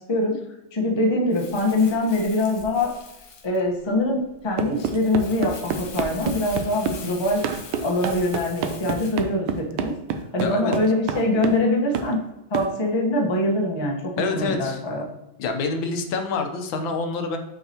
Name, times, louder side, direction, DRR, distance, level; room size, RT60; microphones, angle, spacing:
voice 1, 0.7-2.9 3.4-7.4 7.8-9.9 10.3-12.2 12.5-15.0, left 1 dB, 25° left, -1 dB, 0.6 m, -23 dB
Crumpling crinkling, 1.3-9.2, left 4 dB, 55° left, 0.9 m, -42 dB
sound 1, 4.6-7.0 7.4-11.7 11.9-12.1 12.5-12.7, right 6 dB, 90° right, 1.4 m, -28 dB
voice 2, 10.4-10.8 14.2-14.8 15.4-17.4, left 4 dB, 80° left, 5 dB, 1.6 m, -26 dB
6.6 x 5.2 x 2.8 m, 0.97 s
omnidirectional pair, 2.1 m